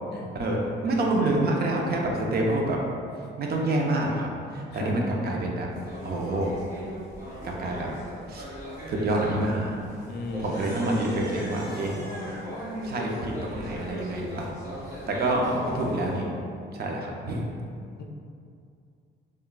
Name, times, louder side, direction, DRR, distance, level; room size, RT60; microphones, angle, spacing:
voice 1, 0.3-2.8 3.4-5.7 6.0-6.6 7.4-7.9 8.3-8.4 8.9-9.8 10.4-12.0 12.8-14.5 15.1-16.2 16.7-17.5, right 1 dB, 50° right, -1 dB, 0.5 m, -27 dB
sound 1, 5.7-16.2, equal, 20° right, 1.2 m, -38 dB
voice 2, 10.0-10.9, left 1 dB, 55° left, 0 dB, 0.4 m, -35 dB
3.6 x 2.2 x 2.3 m, 2.3 s
cardioid pair, 90°, 20 cm